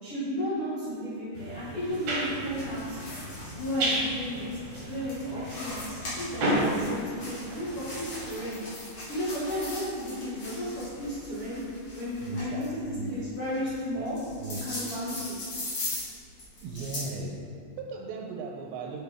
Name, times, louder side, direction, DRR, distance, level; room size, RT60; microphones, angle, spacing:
voice 1, 0.0-3.1 3.5-4.5 4.8-8.6 9.1-11.6 11.9-14.2 14.6-15.4, left 1 dB, 80° left, -11 dB, 1.3 m, -33 dB
sound 1, 1.3-8.3, right 1 dB, 60° right, 2.1 m, -33 dB
sound 2, 1.9-17.2, left 1 dB, 45° left, 2.0 m, -40 dB
voice 2, 12.2-13.1 14.0-14.1 14.4-14.6 16.6-19.0, right 4 dB, 80° right, 1 dB, 2.7 m, -37 dB
7.9 x 6.5 x 3.5 m, 2.3 s
omnidirectional pair, 5.4 m